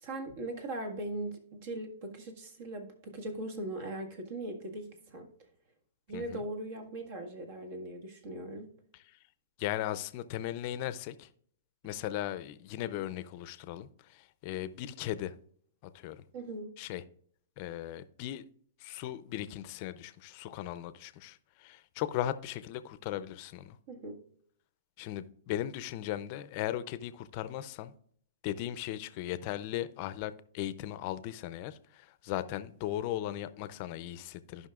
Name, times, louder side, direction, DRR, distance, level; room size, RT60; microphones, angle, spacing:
voice 1, 0.0-5.3 6.1-8.7 16.3-16.7 23.9-24.2, right 1 dB, 55° right, 1.7 m, -40 dB
voice 2, 9.6-11.3 11.8-15.3 15.9-16.2 16.8-17.0 17.6-18.4 18.8-23.8 25.0-27.9 28.4-34.7, left 12 dB, 40° left, 0.5 m, -37 dB
15.0 x 5.5 x 2.4 m
hypercardioid pair, 145°, 0 cm